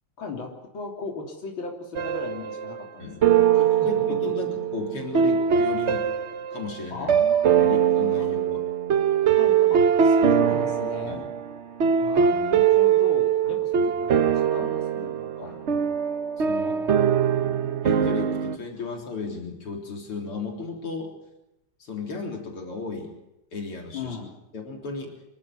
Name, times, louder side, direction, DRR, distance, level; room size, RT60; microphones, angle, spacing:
voice 1, 0.2-3.9 6.9-7.8 8.2-8.3 9.3-11.3 12.0-15.7 16.6-17.9 23.9-24.4, left 3 dB, 65° left, 0 dB, 4.1 m, -38 dB
sound 1, 2.0-2.9 3.2-18.6, right 8 dB, 55° right, 0.7 m, -22 dB
voice 2, 3.6-6.0 6.5-7.1 7.4-8.6 11.0-11.3 13.4-13.6 15.4-15.6 16.5-16.8 17.8-21.1 21.8-23.1 23.5-24.2 24.5-25.1, left 4 dB, 90° left, 1 dB, 4.5 m, -34 dB
26.5 x 13.0 x 9.7 m, 0.91 s
omnidirectional pair, 2.4 m